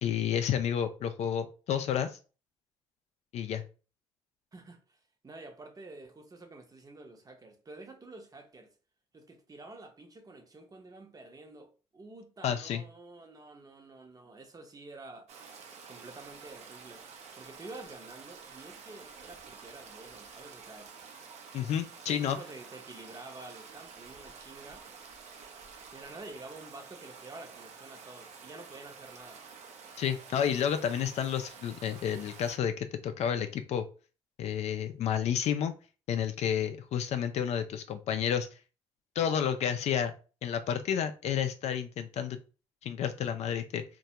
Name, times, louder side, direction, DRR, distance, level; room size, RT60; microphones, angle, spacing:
voice 1, 0.0-2.2 3.3-3.6 12.4-12.8 21.5-22.4 30.0-33.9 34.4-35.7 36.1-38.5 39.2-40.1 40.4-42.4 42.8-43.8, left 8 dB, 65° left, 0.4 m, -30 dB
voice 2, 4.5-8.7 9.1-15.3 15.9-17.0 17.3-20.9 22.1-24.9 25.9-29.4, right 2 dB, 30° right, 0.7 m, -49 dB
Stream, 15.3-32.6, right 5 dB, 65° right, 0.5 m, -50 dB
2.2 x 2.2 x 2.8 m
supercardioid pair, 60°, 12 cm